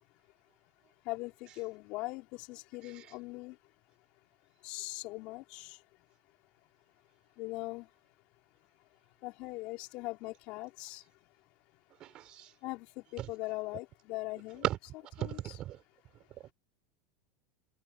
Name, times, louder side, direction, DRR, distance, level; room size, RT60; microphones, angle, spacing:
voice 1, 1.0-3.6 4.6-5.8 7.4-7.9 9.2-11.0 12.6-14.6 15.2-15.6, left 22 dB, 55° left, 5.2 m, -40 dB
voice 2, 12.0-12.5 13.2-13.3 14.6-14.8 15.1-15.8, right 13 dB, 45° right, 4.5 m, -35 dB
hypercardioid pair, 110°, 2 cm